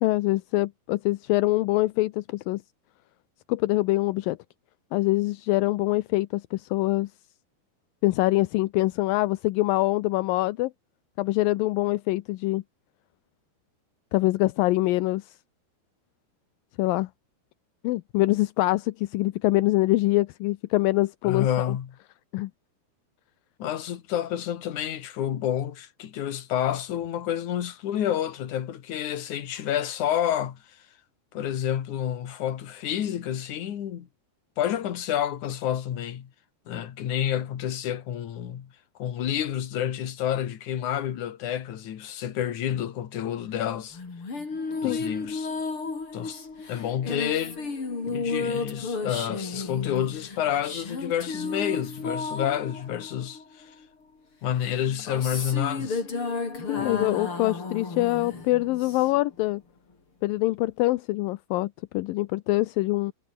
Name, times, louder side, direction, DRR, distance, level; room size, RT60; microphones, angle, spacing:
voice 1, 0.0-2.6 3.5-4.4 4.9-7.1 8.0-10.7 11.2-12.6 14.1-15.2 16.8-17.1 17.8-21.8 22.3-22.5 44.8-45.0 56.7-59.6 60.2-63.1, left 19 dB, 80° left, 2.2 m, -24 dB
voice 2, 21.2-22.0 23.6-30.8 31.3-34.1 34.6-36.3 36.7-38.7 39.0-44.0 44.8-45.5 46.1-46.4 46.7-47.6 48.0-53.7 54.4-56.0 56.8-57.0, left 10 dB, 55° left, 3.0 m, -29 dB
sound 1, 43.9-53.8 54.7-59.3, left 4 dB, 35° left, 5.4 m, -33 dB
omnidirectional pair, 4.5 m